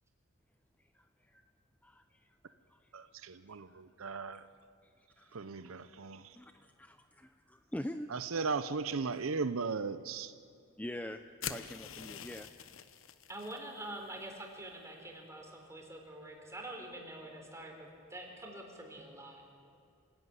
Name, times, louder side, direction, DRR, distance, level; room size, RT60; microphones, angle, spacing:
voice 1, 0.9-1.4 1.8-2.8 3.3-3.8 4.4-4.5 4.8-5.6 6.3-8.1 10.8-11.2 11.5-12.5, left 1 dB, 5° left, 0.5 m, -45 dB
voice 2, 2.9-4.5 5.3-6.4 8.1-10.3 11.4-11.6, right 4 dB, 80° right, 0.7 m, -37 dB
sound 1, 11.4-13.6, left 8 dB, 70° left, 1.0 m, -44 dB
voice 3, 13.3-19.4, right 1 dB, 15° right, 4.4 m, -46 dB
26.5 x 16.0 x 9.8 m
head